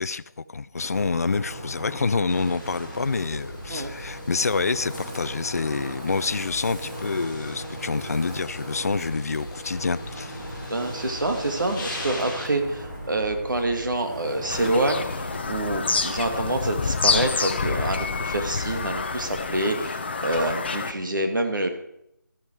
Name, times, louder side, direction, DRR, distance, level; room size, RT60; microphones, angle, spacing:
voice 1, 0.0-10.7, left 4 dB, 50° left, 0.4 m, -27 dB
Wind, 0.7-15.5, equal, 15° right, 3.2 m, -37 dB
sound 1, 2.3-12.5, left 1 dB, 5° left, 1.8 m, -42 dB
voice 2, 10.7-21.7, right 2 dB, 70° right, 2.6 m, -27 dB
Bird vocalization bird call bird song, 14.5-20.9, left 4 dB, 30° left, 0.8 m, -27 dB
13.5 x 11.0 x 4.8 m
figure-of-eight pair, 170°, 11 cm